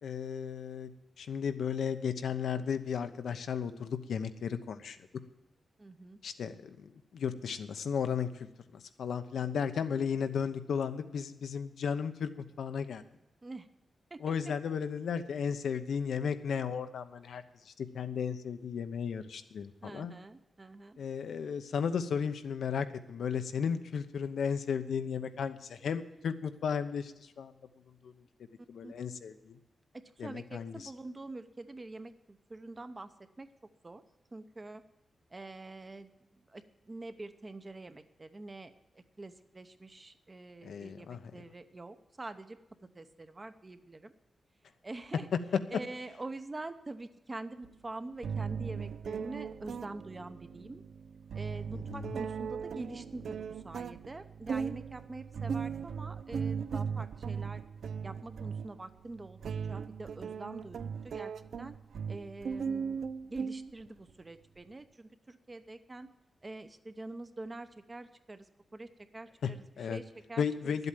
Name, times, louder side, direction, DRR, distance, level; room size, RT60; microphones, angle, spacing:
voice 1, 0.0-0.9 1.2-5.0 6.2-13.0 14.2-20.1 21.0-27.5 28.0-28.1 28.7-29.6 30.2-30.9 40.6-41.2 51.7-52.1 69.4-69.5 69.8-70.0 70.4-70.9, left 7 dB, 85° left, 9 dB, 0.9 m, -35 dB
voice 2, 5.8-6.2 13.4-13.7 14.1-14.3 19.8-21.0 28.8-28.9 29.9-33.1 33.4-34.0 34.3-34.8 35.3-42.6 42.9-44.1 44.8-45.3 45.7-50.8 51.3-57.6 58.0-59.4 59.7-60.8 61.0-61.3 61.6-61.7 62.1-66.1 66.4-70.9, right 2 dB, 25° right, 10 dB, 0.8 m, -45 dB
sound 1, 47.6-47.7 48.2-64.1, right 6 dB, 75° right, 0.5 m, -38 dB
11.5 x 8.1 x 9.0 m, 0.90 s
wide cardioid pair, 140°, 0 cm